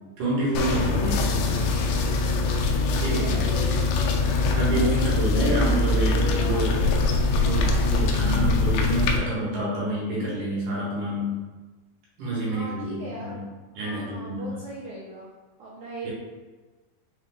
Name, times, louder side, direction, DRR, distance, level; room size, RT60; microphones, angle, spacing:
voice 1, 0.2-1.5 3.0-3.3 4.6-6.8 7.3-11.3 12.2-13.4 13.7-14.6 16.0-16.1, right 1 dB, 70° right, -6 dB, 2.4 m, -28 dB
sound 1, 0.6-9.2, left 3 dB, 85° left, 2.4 m, -23 dB
voice 2, 2.9-5.6 12.4-13.4 13.8-15.3 15.6-16.1, right 2 dB, 90° right, -6 dB, 1.6 m, -39 dB
5.9 x 2.2 x 3.3 m, 1.3 s
omnidirectional pair, 4.3 m